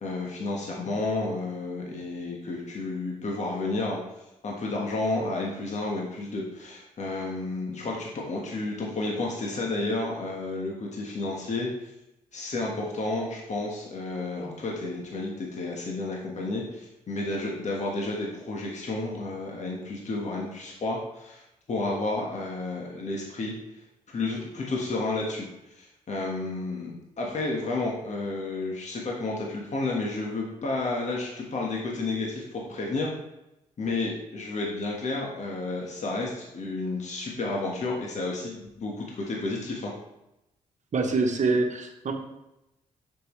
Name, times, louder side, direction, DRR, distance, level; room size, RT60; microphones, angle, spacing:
voice 1, 0.0-4.0 4.4-11.9 12.3-21.4 21.7-23.5 24.1-26.9 27.2-33.1 33.8-39.9, left 2 dB, 50° left, -2 dB, 1.5 m, -31 dB
voice 2, 40.9-42.1, right 3 dB, 50° right, 4 dB, 1.1 m, -25 dB
6.7 x 6.1 x 3.2 m, 0.90 s
supercardioid pair, 50°, 15 cm